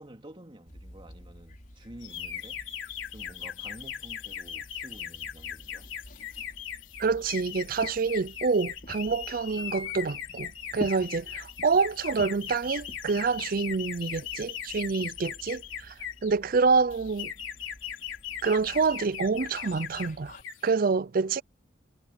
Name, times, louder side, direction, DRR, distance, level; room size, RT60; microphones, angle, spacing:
voice 1, 0.0-2.7 3.1-5.9, right 1 dB, 25° right, 3.3 m, -49 dB
sound 1, 0.7-20.4, left 1 dB, 45° left, 5.6 m, -49 dB
sound 2, 2.0-16.3 16.9-20.1 20.4-20.7, left 9 dB, 80° left, 3.0 m, -39 dB
voice 2, 7.0-15.9 16.2-17.3 18.4-20.4 20.6-21.4, right 4 dB, 45° right, 0.5 m, -27 dB
head